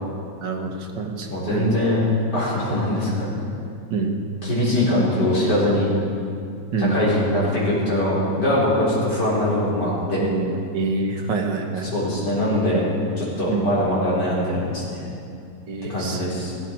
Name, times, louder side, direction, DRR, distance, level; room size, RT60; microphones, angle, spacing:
voice 1, 0.4-0.7 1.0-1.8 3.9-4.2 6.7-7.0 10.1-11.9 13.5-13.7 15.7-16.2, right 4 dB, 85° right, 2 dB, 2.0 m, -26 dB
voice 2, 1.3-2.0 2.3-3.3 4.4-5.9 6.8-10.2 11.8-12.8 13.2-15.1 15.9-16.5, left 1 dB, 70° left, -7 dB, 4.9 m, -22 dB
16.5 x 14.5 x 4.6 m, 2.4 s
omnidirectional pair, 1.9 m